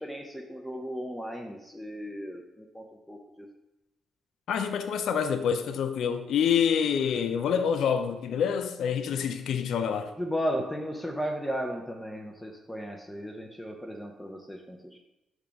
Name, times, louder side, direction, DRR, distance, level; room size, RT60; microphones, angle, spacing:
voice 1, 0.0-3.5 10.2-15.0, equal, 5° left, 1 dB, 0.6 m, -35 dB
voice 2, 4.5-10.1, left 7 dB, 70° left, 8 dB, 0.4 m, -27 dB
5.5 x 3.5 x 5.0 m, 0.94 s
cardioid pair, 90°, 0 cm